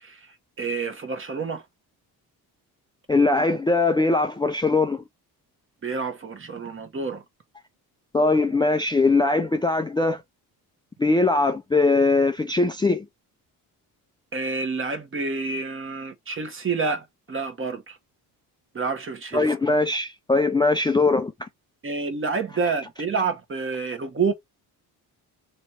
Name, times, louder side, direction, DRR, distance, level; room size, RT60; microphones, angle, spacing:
voice 1, 0.0-1.6 5.8-7.2 14.3-18.0 18.7-19.5 21.8-24.3, right 4 dB, 30° right, 1.1 m, -28 dB
voice 2, 3.1-5.0 8.1-10.2 11.0-13.0 19.3-21.5, left 3 dB, 10° left, 0.5 m, -21 dB
3.1 x 3.1 x 4.3 m
cardioid pair, 85°, 40 cm